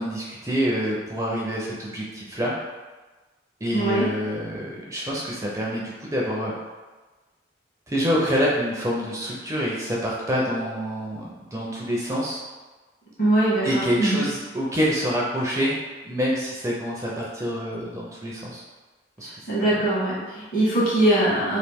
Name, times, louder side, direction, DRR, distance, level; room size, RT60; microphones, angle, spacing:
voice 1, 0.0-2.6 3.6-6.5 7.9-12.4 13.6-15.8 16.0-18.6 19.2-19.8, equal, 15° right, -4 dB, 0.4 m, -26 dB
voice 2, 3.7-4.0 13.2-14.2 19.5-21.6, right 1 dB, 50° left, -7 dB, 1.3 m, -22 dB
3.0 x 2.5 x 3.4 m, 1.3 s
head